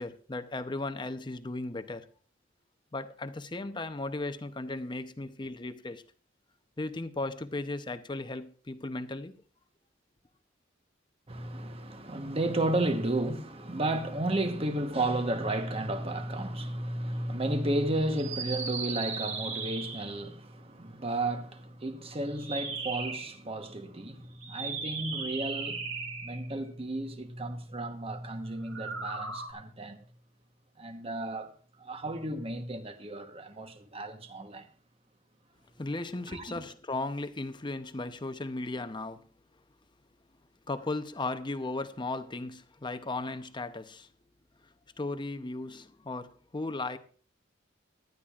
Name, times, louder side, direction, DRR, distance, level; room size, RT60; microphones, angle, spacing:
voice 1, 0.0-2.1 2.9-6.0 6.8-9.3 35.8-39.2 40.7-44.1 45.0-47.0, left 2 dB, 25° left, 0.7 m, -36 dB
voice 2, 11.3-30.0 30.8-31.5 31.8-34.6 36.3-36.6, right 1 dB, 30° right, 1.1 m, -33 dB
sound 1, 18.2-20.3 22.3-23.4 24.4-26.5 28.6-29.5, right 4 dB, 70° right, 2.3 m, -37 dB
18.5 x 12.0 x 2.4 m
head